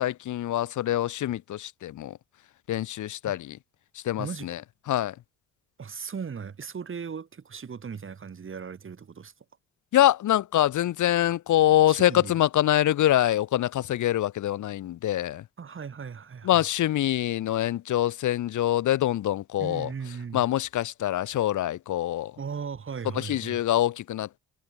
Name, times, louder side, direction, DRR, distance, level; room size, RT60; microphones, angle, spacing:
voice 1, 0.0-2.2 2.7-3.6 3.9-4.6 4.9-5.1 9.9-15.4 16.4-19.9 20.3-22.3 23.1-24.4, left 13 dB, 75° left, 3.1 m, -25 dB
voice 2, 4.2-4.5 5.8-9.3 11.9-12.4 15.6-16.6 19.6-20.4 22.4-23.6, right 6 dB, 40° right, 7.3 m, -37 dB
cardioid pair, 90°, 30 cm